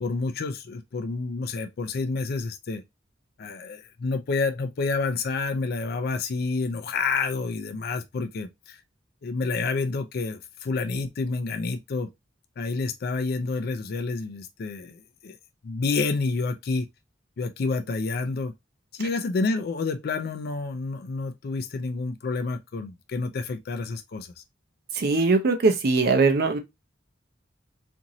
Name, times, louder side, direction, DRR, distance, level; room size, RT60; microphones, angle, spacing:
voice 1, 0.0-2.8 3.4-8.8 9.2-12.1 12.6-15.4 15.6-16.9 17.4-18.5 18.9-24.4, left 3 dB, 55° left, 0.4 m, -29 dB
voice 2, 24.9-26.6, right 3 dB, 55° right, 0.5 m, -21 dB
2.9 x 2.6 x 2.6 m
head